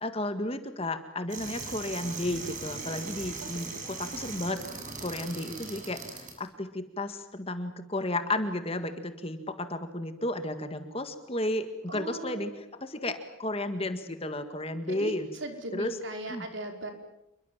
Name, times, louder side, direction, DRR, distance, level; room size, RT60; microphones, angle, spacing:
voice 1, 0.0-4.6 5.0-12.5 12.8-15.3 15.7-15.9 16.3-16.5, left 1 dB, 25° left, 9 dB, 1.8 m, -33 dB
sound 1, 1.3-6.3, right 4 dB, 35° right, 6.9 m, -39 dB
voice 2, 11.9-12.5 14.9-16.9, right 1 dB, 60° right, 4 dB, 5.2 m, -38 dB
28.5 x 23.0 x 7.5 m, 0.83 s
head